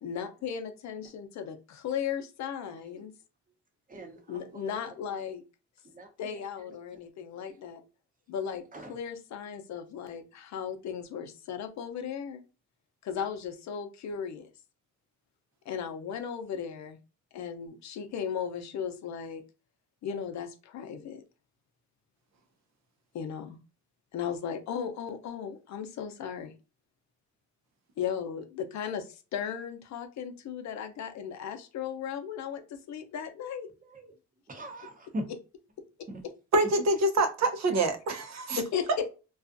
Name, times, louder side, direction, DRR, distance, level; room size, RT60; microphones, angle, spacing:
voice 1, 0.0-3.1 4.3-5.4 6.2-7.8 8.3-12.4 13.0-14.5 15.7-17.0 17.3-19.4 20.0-21.2 23.1-23.6 24.1-26.5 28.0-33.7 35.3-35.4 38.6-39.1, left 7 dB, 65° left, 0.6 m, -36 dB
voice 2, 2.7-3.0 3.9-4.8 5.9-6.4 8.7-8.9 33.9-34.1 34.5-35.3, equal, 25° right, 0.8 m, -41 dB
voice 3, 36.5-38.6, right 2 dB, 60° right, 0.7 m, -26 dB
2.4 x 2.3 x 2.5 m
cardioid pair, 90°, 30 cm